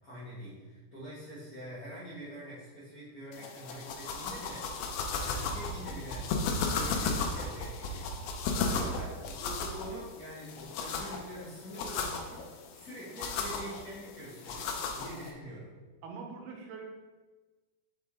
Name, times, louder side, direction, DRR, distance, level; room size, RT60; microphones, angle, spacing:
voice 1, 0.0-6.3 6.7-8.1 8.5-15.7, equal, 50° left, -12 dB, 1.1 m, -45 dB
sound 1, 3.3-15.3, left 4 dB, 80° left, 2.4 m, -35 dB
voice 2, 16.0-16.8, right 5 dB, 85° right, 2 dB, 2.9 m, -43 dB
6.4 x 4.9 x 3.7 m, 1.3 s
omnidirectional pair, 4.5 m